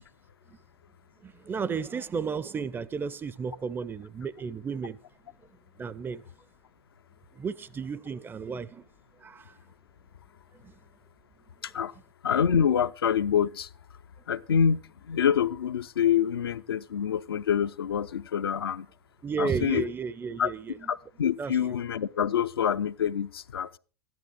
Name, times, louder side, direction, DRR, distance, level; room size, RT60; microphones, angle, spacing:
voice 1, 1.2-5.0 5.8-6.2 7.4-8.8 9.2-9.5 10.6-10.7 19.2-20.8 21.4-21.5, right 5 dB, 15° right, 0.5 m, -33 dB
voice 2, 12.2-13.7 14.3-18.9 19.4-19.8 20.4-20.5 20.9-23.7, left 8 dB, 70° left, 0.6 m, -26 dB
13.5 x 11.0 x 4.9 m
figure-of-eight pair, 90°, 13 cm